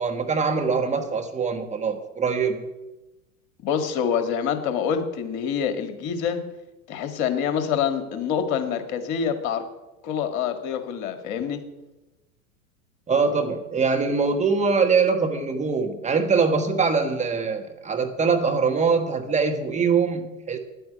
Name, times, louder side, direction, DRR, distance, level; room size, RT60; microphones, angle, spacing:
voice 1, 0.0-2.7 13.1-20.6, right 5 dB, 15° right, 5 dB, 1.4 m, -23 dB
voice 2, 3.6-6.4 6.9-9.7 10.0-11.6, left 7 dB, 45° left, 9 dB, 1.9 m, -26 dB
10.0 x 9.1 x 9.7 m, 1.0 s
figure-of-eight pair, 90°, 40 cm